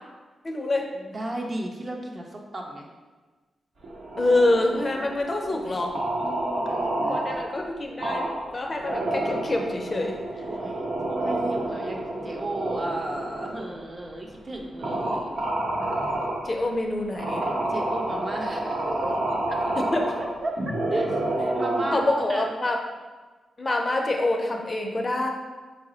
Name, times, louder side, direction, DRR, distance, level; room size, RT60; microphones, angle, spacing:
voice 1, 0.4-0.9 4.2-5.9 7.0-8.2 8.5-10.1 16.4-17.4 19.8-20.2 21.9-22.8 23.6-25.3, left 2 dB, 35° left, 2 dB, 0.4 m, -26 dB
voice 2, 1.1-2.9 5.5-5.8 6.2-7.4 10.4-15.3 17.7-19.1 20.2-20.5 20.9-21.1 21.5-22.4, right 1 dB, 35° right, 1 dB, 0.5 m, -34 dB
sound 1, 3.8-5.4 5.9-7.5 8.0-8.5 8.8-13.7 14.3-14.4 14.8-16.5 17.1-22.0, right 1 dB, 80° right, 0.8 m, -29 dB
4.0 x 2.0 x 3.8 m, 1.3 s
cardioid pair, 100°, 0 cm